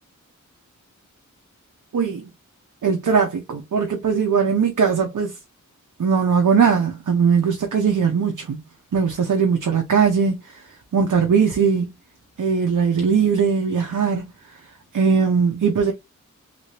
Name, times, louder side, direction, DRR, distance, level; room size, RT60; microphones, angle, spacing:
voice 1, 1.9-2.3 2.8-5.4 6.0-8.6 8.9-10.6 10.9-11.9 12.4-14.3 14.9-15.9, right 6 dB, 80° right, 0.7 m, -20 dB
3.3 x 2.6 x 3.2 m
wide cardioid pair, 60°, 31 cm